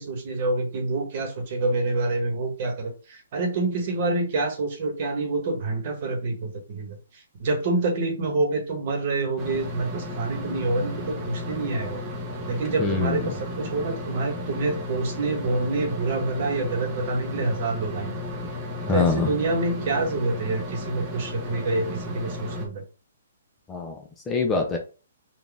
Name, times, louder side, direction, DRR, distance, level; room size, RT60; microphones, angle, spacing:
voice 1, 0.0-7.0 7.4-12.0 12.5-18.2 18.9-22.8, right 2 dB, 40° right, 4 dB, 1.2 m, -27 dB
sound 1, 9.4-22.7, left 1 dB, 20° right, 0.8 m, -34 dB
voice 2, 12.8-13.3 18.9-19.3 23.7-24.0 24.3-24.8, left 4 dB, 10° left, 2 dB, 0.6 m, -24 dB
3.9 x 2.5 x 3.5 m, 0.34 s
hypercardioid pair, 160°, 0 cm